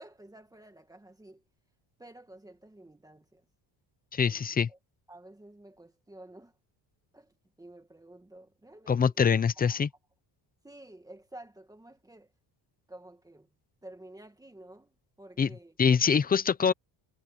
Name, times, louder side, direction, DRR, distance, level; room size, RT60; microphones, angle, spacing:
voice 1, 0.0-1.4 2.0-3.5 4.3-4.8 5.1-6.5 7.1-9.3 9.6-9.8 10.6-12.3 12.9-13.5 13.8-15.7, right 1 dB, 10° right, 1.8 m, -51 dB
voice 2, 4.1-4.7 8.9-9.9 15.4-15.5 15.8-16.7, left 6 dB, 20° left, 0.5 m, -24 dB
cardioid pair, 175°, 45 cm